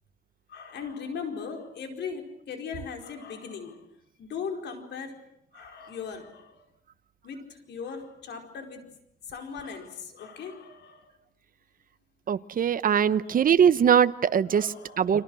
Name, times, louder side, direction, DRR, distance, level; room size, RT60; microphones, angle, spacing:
voice 1, 0.5-3.8 4.2-5.2 5.5-6.6 7.2-8.8 9.3-11.0 13.0-13.4 14.5-15.2, left 6 dB, 80° left, 4 dB, 4.7 m, -38 dB
voice 2, 12.3-15.2, right 8 dB, 55° right, 13 dB, 1.1 m, -22 dB
30.0 x 26.0 x 6.4 m, 0.79 s
cardioid pair, 110°, 17 cm